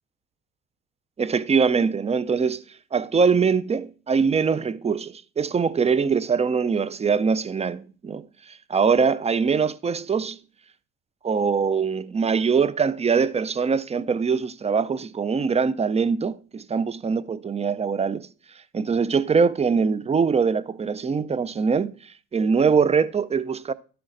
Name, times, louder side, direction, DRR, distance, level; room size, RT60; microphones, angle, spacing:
voice 1, 1.2-2.6 2.9-10.4 11.2-18.3 18.7-22.0 22.3-23.7, right 5 dB, 15° right, 0.4 m, -23 dB
12.0 x 10.0 x 2.6 m
hypercardioid pair, 65°, 43 cm